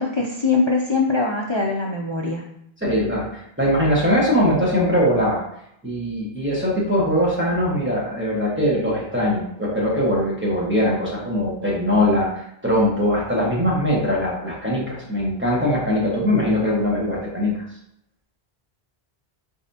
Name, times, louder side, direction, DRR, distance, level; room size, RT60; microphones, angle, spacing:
voice 1, 0.0-2.4, left 3 dB, 50° left, 0 dB, 0.3 m, -22 dB
voice 2, 2.8-5.4 5.8-17.6, equal, 10° right, -6 dB, 1.2 m, -21 dB
4.0 x 3.5 x 2.7 m, 0.75 s
omnidirectional pair, 1.1 m